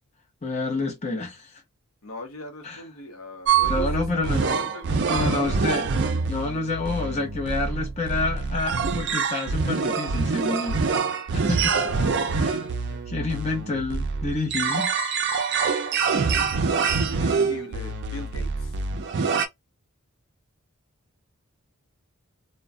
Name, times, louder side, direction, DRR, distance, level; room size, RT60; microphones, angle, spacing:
voice 1, 0.4-1.6 2.6-2.8 3.7-4.4 5.1-5.9 6.3-10.8 11.3-11.8 12.3-12.6 13.1-14.9, left 3 dB, 30° left, 0.7 m, -28 dB
voice 2, 2.0-5.7 11.7-13.0 16.9-18.7, left 2 dB, 75° left, 0.7 m, -39 dB
sound 1, 3.5-19.5, right 5 dB, 50° right, 0.4 m, -25 dB
2.3 x 2.1 x 2.5 m
head